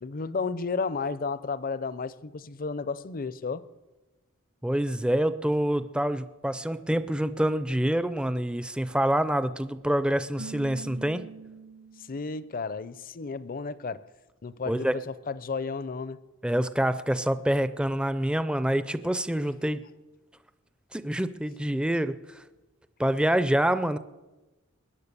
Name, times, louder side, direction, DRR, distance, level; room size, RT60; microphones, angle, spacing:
voice 1, 0.0-3.7 12.0-14.1 14.4-16.2, left 4 dB, 45° left, 0.6 m, -33 dB
voice 2, 4.6-11.2 14.7-15.0 16.4-19.8 20.9-22.4 23.0-24.0, right 1 dB, 5° right, 0.5 m, -26 dB
Keyboard (musical), 10.4-12.4, right 4 dB, 85° right, 5.6 m, -44 dB
21.0 x 10.0 x 6.8 m
head